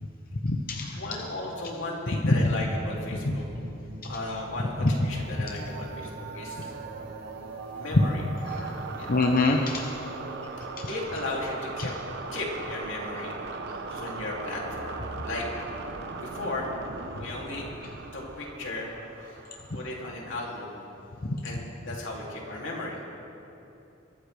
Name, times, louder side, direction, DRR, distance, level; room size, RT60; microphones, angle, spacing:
voice 1, 0.4-1.0 2.2-2.5 3.2-3.4 4.8-5.1 7.9-8.0 8.5-9.8 10.8-10.9 11.8-11.9 21.2-21.4, left 2 dB, 50° left, 2 dB, 0.7 m, -25 dB
voice 2, 1.0-3.4 4.0-6.6 7.7-8.2 9.0-9.2 10.9-11.9 12.3-13.3 13.9-15.5 16.2-16.7 17.2-17.7 18.1-18.9 19.2-19.4 19.7-20.8 21.4-23.0, left 2 dB, 80° left, -3 dB, 2.8 m, -35 dB
sound 1, 2.3-20.8, right 3 dB, 60° right, 0.9 m, -39 dB
22.0 x 13.0 x 3.4 m, 2.8 s
head